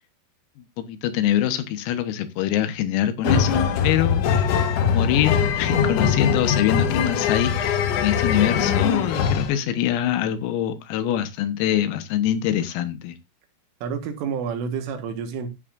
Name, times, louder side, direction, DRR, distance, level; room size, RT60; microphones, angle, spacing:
voice 1, 0.8-4.3 4.9-13.2, left 11 dB, 85° left, 4.0 m, -24 dB
sound 1, 3.2-9.5, left 7 dB, 70° left, 3.4 m, -22 dB
voice 2, 13.8-15.5, right 6 dB, 75° right, 4.0 m, -29 dB
12.5 x 9.7 x 2.6 m
omnidirectional pair, 6.0 m